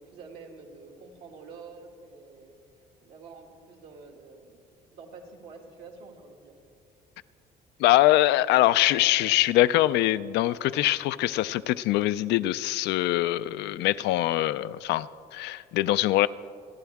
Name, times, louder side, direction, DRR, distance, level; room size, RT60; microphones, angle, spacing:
voice 1, 0.0-2.5 3.0-4.6 4.9-6.6, right 4 dB, 80° right, 1 dB, 2.3 m, -47 dB
voice 2, 7.8-16.3, left 15 dB, 85° left, 15 dB, 0.4 m, -23 dB
27.5 x 11.0 x 3.5 m, 2.4 s
cardioid pair, 110°, 17 cm